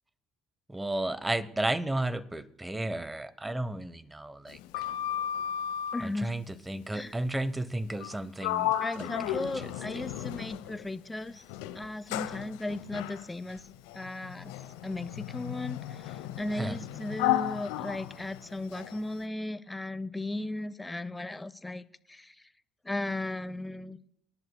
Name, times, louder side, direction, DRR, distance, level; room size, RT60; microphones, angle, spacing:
voice 1, 0.7-4.6 6.0-9.4 9.6-9.7 16.6-16.8, right 1 dB, 10° right, 17 dB, 0.9 m, -33 dB
Sliding door, 4.5-6.1 7.9-8.2 8.4-10.9 11.5-19.0, left 12 dB, 65° left, 0.7 m, -34 dB
voice 2, 5.9-6.3 6.9-7.1 8.8-11.4 11.7-13.7 13.9-14.5 14.8-22.4 22.8-24.0, left 2 dB, 10° left, 15 dB, 0.6 m, -36 dB
26.0 x 11.0 x 2.2 m, 0.70 s
figure-of-eight pair, 55°, 0 cm